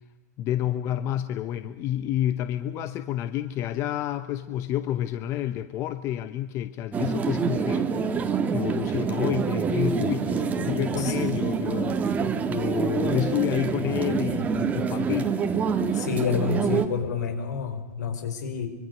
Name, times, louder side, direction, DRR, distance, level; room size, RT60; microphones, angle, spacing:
voice 1, 0.4-7.9 8.5-12.2 12.5-15.3, left 12 dB, 30° left, 11 dB, 0.9 m, -29 dB
sound 1, 6.9-16.9, right 6 dB, 15° right, 1.7 m, -26 dB
voice 2, 15.9-18.7, left 7 dB, 70° left, 8 dB, 5.0 m, -29 dB
25.0 x 23.5 x 6.7 m, 1.2 s
hypercardioid pair, 145°, 10 cm